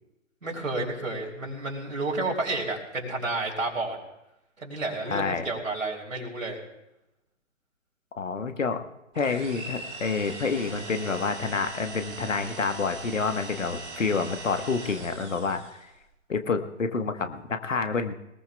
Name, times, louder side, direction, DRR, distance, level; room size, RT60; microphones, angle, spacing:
voice 1, 0.4-4.0 4.6-6.6, right 2 dB, 75° right, -2 dB, 3.1 m, -31 dB
voice 2, 5.1-5.4 8.2-8.8 9.1-15.9 16.3-18.1, left 4 dB, 70° left, 8 dB, 1.3 m, -28 dB
sound 1, 9.1-15.9, right 3 dB, 15° right, 2.6 m, -40 dB
21.5 x 19.5 x 2.3 m, 0.90 s
figure-of-eight pair, 130°, 40 cm